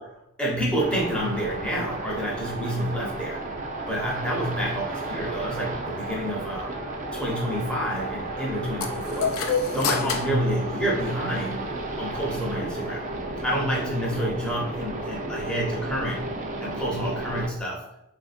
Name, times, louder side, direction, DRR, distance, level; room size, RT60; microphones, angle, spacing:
voice 1, 0.0-3.4 3.9-6.8 7.1-9.3 9.7-11.6 12.0-13.0 13.4-16.3 16.6-17.9, equal, 5° left, -4 dB, 0.6 m, -28 dB
sound 1, 0.8-17.5, right 2 dB, 35° right, 0.4 m, -33 dB
sound 2, 8.8-11.5, left 5 dB, 65° left, 0.4 m, -29 dB
3.5 x 2.5 x 2.4 m, 0.84 s
head